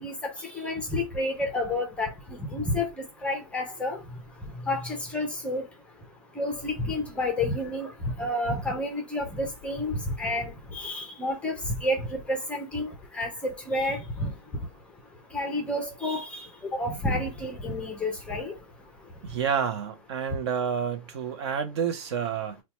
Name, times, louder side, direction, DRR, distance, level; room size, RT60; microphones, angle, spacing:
voice 1, 0.0-2.1 2.5-4.0 4.7-5.7 6.4-7.9 8.2-14.3 15.3-18.5, left 1 dB, 5° left, 0.5 m, -30 dB
voice 2, 19.2-22.6, right 7 dB, 45° right, 0.6 m, -29 dB
4.3 x 2.2 x 2.9 m
hypercardioid pair, 160°, 19 cm